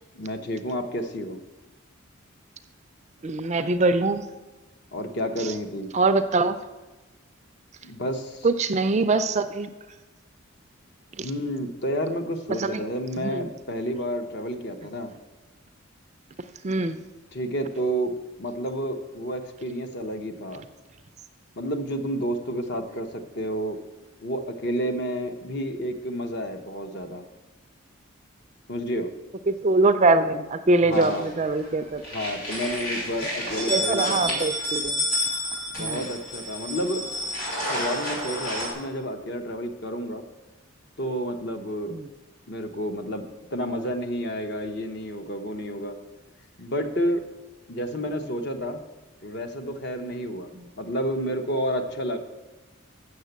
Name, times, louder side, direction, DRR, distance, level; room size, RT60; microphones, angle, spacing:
voice 1, 0.2-1.4 4.9-5.9 7.8-8.5 11.2-15.1 17.3-18.1 18.4-20.6 21.6-23.1 23.3-23.8 24.2-27.2 28.7-29.1 30.8-31.3 32.0-34.4 35.8-37.1 37.7-40.2 41.0-41.9 42.5-43.2 43.5-46.0 46.6-47.2 47.7-48.8 49.2-50.5 50.8-52.2, equal, 55° left, 6 dB, 0.9 m, -30 dB
voice 2, 3.2-4.2 5.9-6.6 8.4-9.7 11.2-11.3 12.6-12.8 13.2-13.5 16.6-17.0 29.5-32.0 33.7-35.0 35.8-36.1 41.9-42.1, right 3 dB, 30° right, 10 dB, 0.4 m, -23 dB
sound 1, 30.9-31.7 32.0-38.7, left 1 dB, 90° left, 3.8 m, -30 dB
7.4 x 6.6 x 8.0 m, 1.2 s
head